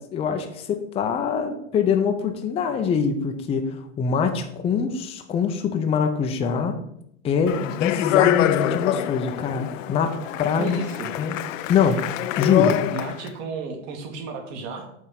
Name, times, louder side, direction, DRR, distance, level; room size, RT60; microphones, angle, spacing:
voice 1, 0.0-6.7 7.2-10.8 11.2-11.4 11.7-12.1 12.4-12.8, left 6 dB, 15° left, 5 dB, 0.6 m, -24 dB
Speech, 7.5-13.3, left 12 dB, 80° left, 0.6 m, -25 dB
voice 2, 10.6-11.1 12.9-14.9, right 4 dB, 45° right, 3 dB, 1.8 m, -33 dB
7.7 x 3.5 x 5.8 m, 0.74 s
supercardioid pair, 140°, 38 cm